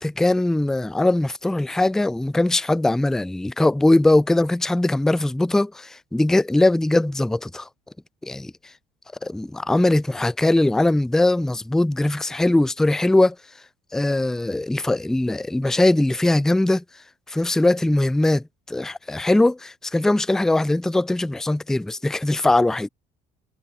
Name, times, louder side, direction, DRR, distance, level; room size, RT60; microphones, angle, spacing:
voice 1, 0.0-7.7 8.2-8.5 9.2-13.4 13.9-16.8 17.3-22.9, left 2 dB, 5° left, 0.3 m, -20 dB
cardioid pair, 110°, 17 cm